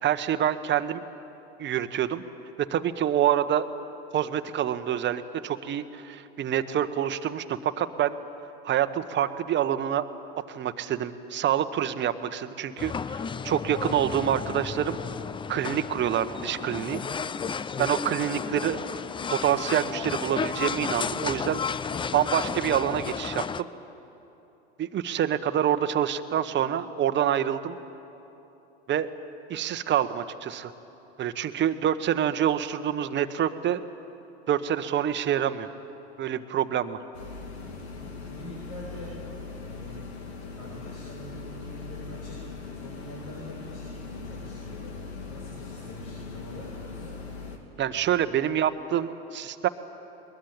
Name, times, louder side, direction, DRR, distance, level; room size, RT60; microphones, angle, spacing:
voice 1, 0.0-1.0 1.6-2.2 2.7-3.7 4.1-8.2 8.6-10.1 10.5-13.2 13.4-15.0 15.5-17.0 17.8-18.8 19.3-21.6 22.1-23.7 24.8-27.8 28.9-29.1 29.5-30.7 31.2-33.8 34.5-35.7 36.2-37.0 47.8-49.7, right 10 dB, 35° right, 10 dB, 1.2 m, -26 dB
sound 1, 12.8-23.6, left 6 dB, 15° left, 0.5 m, -33 dB
sound 2, 37.1-47.6, left 4 dB, 75° left, 2.9 m, -40 dB
voice 2, 38.0-39.2 39.6-40.0 40.5-45.0 45.3-47.2, equal, 60° left, -5 dB, 7.3 m, -44 dB
21.5 x 21.0 x 8.9 m, 3.0 s
hypercardioid pair, 80°, 32 cm